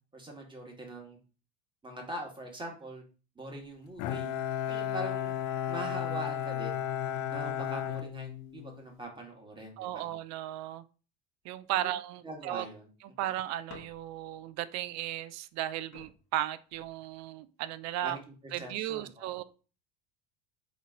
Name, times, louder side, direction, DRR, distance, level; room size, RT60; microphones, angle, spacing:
voice 1, 0.1-1.2 1.8-3.0 3.3-4.3 4.7-5.4 5.7-6.8 7.3-10.0 11.7-11.8 12.2-12.9 18.0-19.4, right 1 dB, 15° right, 1.6 m, -42 dB
Bowed string instrument, 4.0-8.9, left 10 dB, 60° left, 0.5 m, -34 dB
voice 2, 9.8-10.8 11.4-12.7 13.2-18.2 18.5-19.4, right 13 dB, 45° right, 0.5 m, -35 dB
sound 1, 13.7-14.4 15.5-15.6 15.9-17.4 18.2-18.6, left 6 dB, 40° left, 1.2 m, -55 dB
3.9 x 3.0 x 3.7 m
hypercardioid pair, 80°, 37 cm